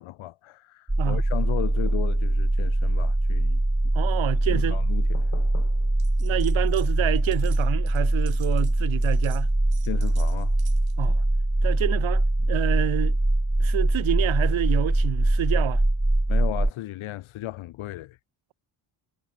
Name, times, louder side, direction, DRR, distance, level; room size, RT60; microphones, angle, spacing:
voice 1, 0.0-3.9 4.5-5.9 9.8-10.6 12.4-12.5 16.3-18.2, left 16 dB, 85° left, 3.0 m, -35 dB
sound 1, 0.9-16.7, right 1 dB, 5° right, 0.6 m, -23 dB
voice 2, 3.9-4.8 6.2-9.5 11.0-11.2 11.6-13.2 13.6-15.8, right 14 dB, 75° right, 3.2 m, -28 dB
sound 2, 6.0-6.9 7.2-11.0, right 9 dB, 50° right, 7.0 m, -51 dB
cardioid pair, 125°, 47 cm